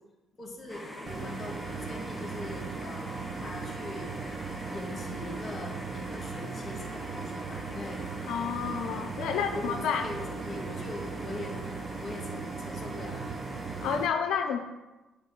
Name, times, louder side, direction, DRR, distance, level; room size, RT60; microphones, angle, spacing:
voice 1, 0.4-4.1 4.7-8.0 9.2-11.6 12.0-13.2, left 2 dB, 30° left, 0 dB, 1.9 m, -42 dB
sound 1, 0.7-14.0, equal, 5° left, 0.9 m, -42 dB
sound 2, 1.1-14.1, right 5 dB, 50° right, 0.4 m, -38 dB
voice 2, 8.3-10.1 13.8-14.6, left 7 dB, 80° left, 5 dB, 0.4 m, -30 dB
8.1 x 3.0 x 5.0 m, 1.1 s
cardioid pair, 95°, 0 cm